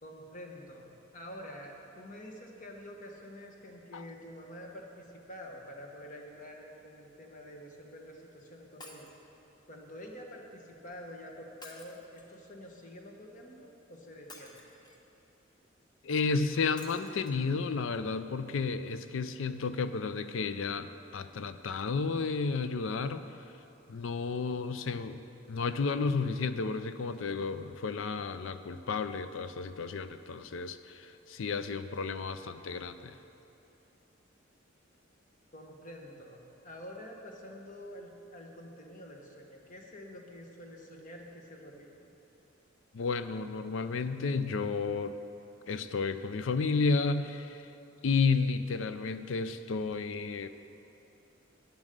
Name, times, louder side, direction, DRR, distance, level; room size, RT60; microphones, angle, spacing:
voice 1, 0.0-9.1 9.7-14.6 35.5-42.1, equal, 40° left, 1 dB, 1.1 m, -47 dB
Shatter, 8.8-9.2 11.6-12.5 14.3-15.1 16.8-17.3 18.0-18.1 18.3-18.4, left 2 dB, 20° left, 0.8 m, -51 dB
voice 2, 16.0-23.2 23.9-25.2 25.5-33.1 42.9-45.1 45.7-47.7 48.0-50.5, left 4 dB, 70° left, 11 dB, 0.4 m, -32 dB
8.8 x 7.2 x 6.6 m, 2.9 s
head